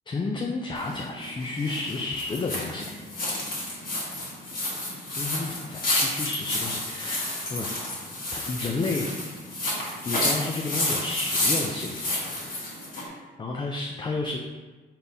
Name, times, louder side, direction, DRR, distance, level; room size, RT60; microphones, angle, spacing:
voice 1, 0.1-2.9 5.1-8.0 8.3-9.1 10.1-12.0 13.1-14.4, left 3 dB, 25° left, 0 dB, 0.4 m, -31 dB
sound 1, 0.7-13.1, left 1 dB, 50° left, 1.5 m, -30 dB
4.2 x 3.5 x 2.7 m, 1.3 s
cardioid pair, 90°, 20 cm